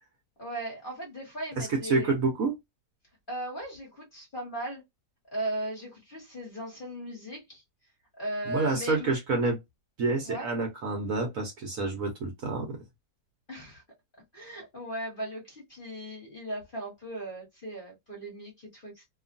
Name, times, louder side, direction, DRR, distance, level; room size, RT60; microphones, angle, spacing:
voice 1, 0.4-2.2 3.3-4.8 5.3-7.6 8.2-9.1 10.2-10.5 13.5-13.8 14.3-19.1, right 1 dB, 35° left, 1.2 m, -37 dB
voice 2, 1.6-2.6 8.5-9.6 10.0-12.8, right 3 dB, 60° right, 1.1 m, -28 dB
2.9 x 2.4 x 2.5 m
omnidirectional pair, 1.9 m